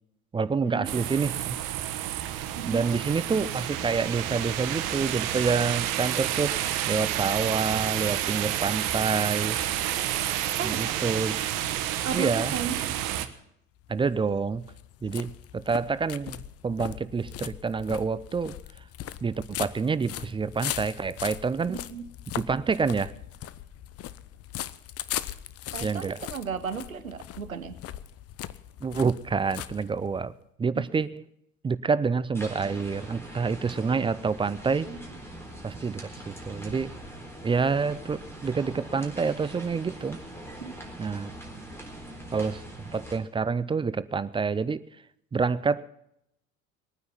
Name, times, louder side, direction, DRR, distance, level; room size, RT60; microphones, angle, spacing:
voice 1, 0.3-1.6 2.7-6.6 6.9-9.6 10.6-11.5 12.1-12.5 13.9-14.7 15.0-16.4 16.6-18.6 19.2-21.8 22.3-23.1 25.8-26.2 28.8-30.3 30.6-31.2 31.6-34.9 35.6-37.0 37.4-40.2 41.0-41.3 42.3-42.6 42.9-44.8 45.3-45.8, right 5 dB, 15° right, 17 dB, 0.5 m, -27 dB
sound 1, 0.8-13.3, right 12 dB, 50° right, 1.3 m, -30 dB
voice 2, 12.0-12.8 21.7-22.0 25.7-27.8 30.8-30.9 34.9-35.0 40.6-40.7, right 6 dB, 90° right, 11 dB, 1.1 m, -34 dB
sound 2, 13.8-30.3, left 12 dB, 35° left, 0.8 m, -39 dB
sound 3, 32.3-43.2, right 1 dB, 5° left, 4.0 m, -42 dB
20.5 x 9.5 x 5.7 m, 0.77 s
figure-of-eight pair, 70°, 40 cm